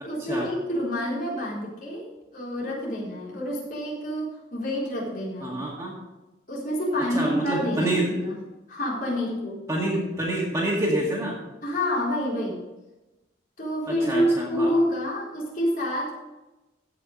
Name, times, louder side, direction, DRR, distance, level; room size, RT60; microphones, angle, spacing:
voice 1, 0.0-5.6 6.5-8.3 8.7-9.6 11.6-12.6 13.6-16.1, equal, 45° left, -5 dB, 4.1 m, -28 dB
voice 2, 5.4-5.9 7.1-8.1 9.7-11.3 13.9-14.7, right 1 dB, 15° right, -4 dB, 2.1 m, -27 dB
15.5 x 6.0 x 5.2 m, 1.1 s
head